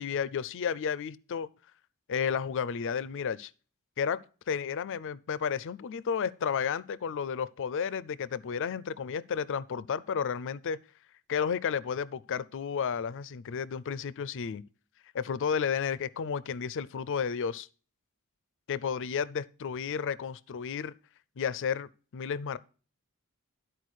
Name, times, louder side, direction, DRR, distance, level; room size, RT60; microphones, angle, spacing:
voice 1, 0.0-1.5 2.1-3.5 4.0-4.2 4.5-10.8 11.3-14.6 15.1-17.7 18.7-20.9 21.4-22.6, left 7 dB, 60° left, 0.4 m, -32 dB
12.0 x 4.5 x 6.3 m
head